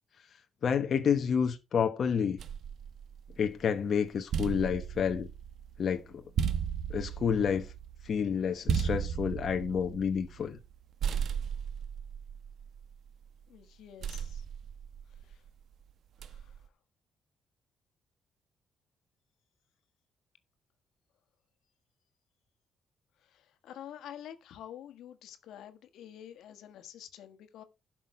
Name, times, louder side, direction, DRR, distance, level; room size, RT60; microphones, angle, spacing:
voice 1, 0.6-2.4 3.4-5.3 5.8-6.0 6.9-7.7 8.0-10.6, left 7 dB, 55° left, 1.1 m, -29 dB
sound 1, 2.4-3.7 4.1-10.7 11.0-13.3 14.0-15.5 16.2-16.7, right 7 dB, 65° right, 1.0 m, -35 dB
voice 2, 13.5-14.4 23.6-27.6, left 10 dB, 80° left, 1.5 m, -47 dB
11.5 x 6.2 x 4.9 m
cardioid pair, 90°, 0 cm